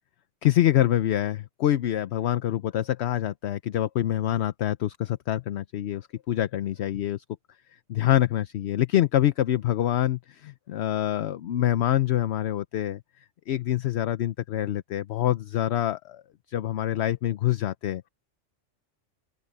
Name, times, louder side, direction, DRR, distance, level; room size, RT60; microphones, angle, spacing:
voice 1, 0.4-7.2 7.9-13.0 13.5-16.2 16.5-18.0, left 12 dB, 65° left, 0.8 m, -25 dB
open air
omnidirectional pair, 1.3 m